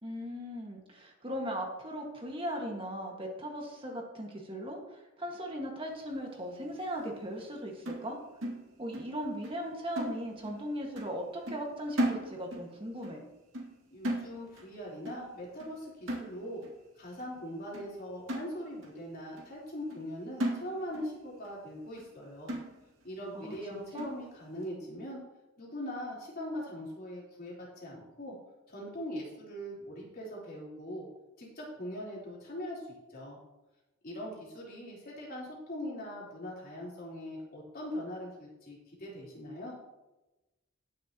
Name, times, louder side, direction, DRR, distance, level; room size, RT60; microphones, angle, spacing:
voice 1, 0.0-8.2 8.8-13.2 23.3-24.1, equal, 25° right, 0 dB, 1.8 m, -38 dB
sound 1, 7.9-9.2 9.4-9.7 10.0-10.7 11.0-11.2 11.5-12.7 13.0-13.2 13.5-13.8 14.0-14.7 15.1-15.3 15.6-15.8 16.1-16.7 17.2-17.3 17.7-17.9 18.3-19.0 19.4-19.5 19.9-20.1 20.4-21.1 21.4-21.5 22.0-22.1 22.5-23.0 23.5-23.6 24.0-24.2, right 1 dB, 90° right, 2.2 m, -36 dB
voice 2, 13.9-16.6 17.0-22.5 23.0-25.2 25.6-28.3 28.7-31.1 31.4-32.8 33.1-33.4 34.0-39.7, equal, 50° left, -5 dB, 3.8 m, -41 dB
20.0 x 6.9 x 3.0 m, 1.0 s
head